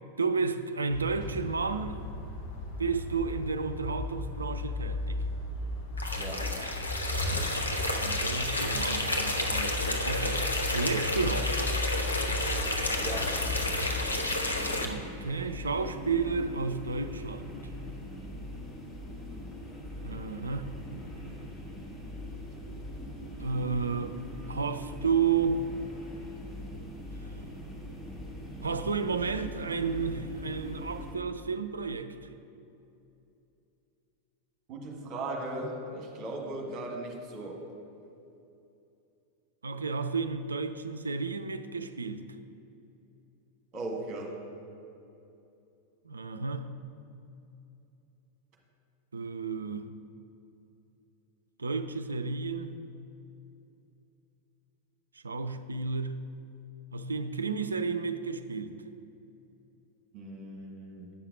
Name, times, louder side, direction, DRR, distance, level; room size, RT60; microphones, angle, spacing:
voice 1, 0.2-2.0 2.8-5.2 8.0-10.4 10.7-11.6 14.8-17.6 20.0-20.8 23.4-24.2 24.5-25.6 28.6-32.2 39.6-42.2 46.0-46.7 49.1-49.9 51.6-52.8 55.1-56.3 56.9-58.7, right 5 dB, 75° right, 10 dB, 0.4 m, -32 dB
sound 1, 0.9-14.1, left 2 dB, 45° left, 1.4 m, -36 dB
sound 2, 6.0-14.8, left 1 dB, 80° left, 0.7 m, -31 dB
voice 2, 6.2-6.7 13.0-13.4 34.7-37.7 43.7-44.4 60.1-61.1, right 2 dB, 35° right, 0 dB, 1.6 m, -38 dB
sound 3, 12.8-31.1, left 1 dB, 15° left, 1.3 m, -42 dB
8.5 x 5.7 x 5.2 m, 2.8 s
figure-of-eight pair, 90°, 0 cm